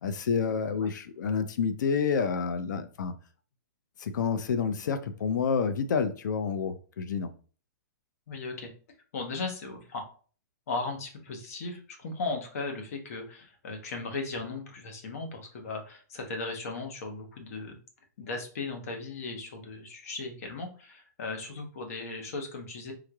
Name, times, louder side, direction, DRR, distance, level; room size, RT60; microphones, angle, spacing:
voice 1, 0.0-3.1 4.0-7.3, left 6 dB, 75° left, 0.5 m, -29 dB
voice 2, 8.3-8.7 9.1-10.1 10.7-17.8 18.2-22.9, left 3 dB, 50° left, 1.0 m, -37 dB
3.6 x 3.2 x 2.3 m
hypercardioid pair, 175°, 10 cm